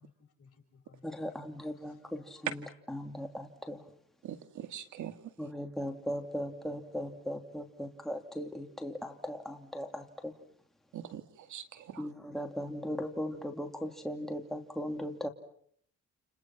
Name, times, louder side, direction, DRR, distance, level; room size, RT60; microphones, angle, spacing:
voice 1, 0.0-1.4 1.8-2.2 11.9-12.0 12.6-13.0, left 6 dB, 50° left, 6.4 m, -59 dB
voice 2, 1.0-3.8 5.4-10.3 12.0-15.3, equal, ahead, 2.7 m, -38 dB
voice 3, 4.2-5.2 10.9-12.1, right 10 dB, 75° right, 2.2 m, -43 dB
29.5 x 29.5 x 5.9 m
cardioid pair, 90°, 30 cm